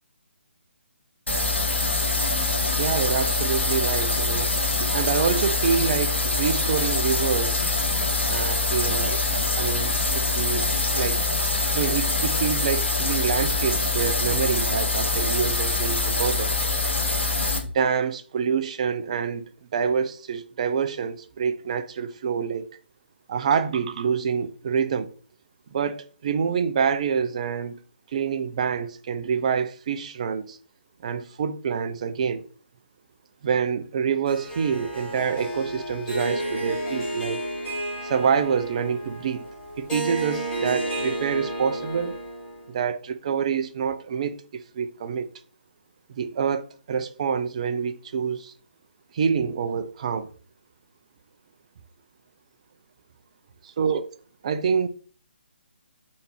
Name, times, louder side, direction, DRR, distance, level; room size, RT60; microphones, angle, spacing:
sound 1, 1.3-17.6, left 3 dB, 70° left, 1.2 m, -24 dB
voice 1, 2.8-4.5 4.8-7.6 8.3-11.2 11.7-16.5 17.6-19.4 19.7-22.7 23.3-25.1 25.7-27.8 28.1-30.6 31.0-32.4 33.4-37.4 38.0-39.4 39.8-42.2 42.7-45.3 46.1-48.5 49.1-50.3 53.8-54.0 54.4-54.9, right 6 dB, 35° right, 0.4 m, -26 dB
Harp, 34.3-42.7, right 1 dB, 10° left, 2.1 m, -32 dB
4.4 x 3.2 x 3.1 m
figure-of-eight pair, 140°, 6 cm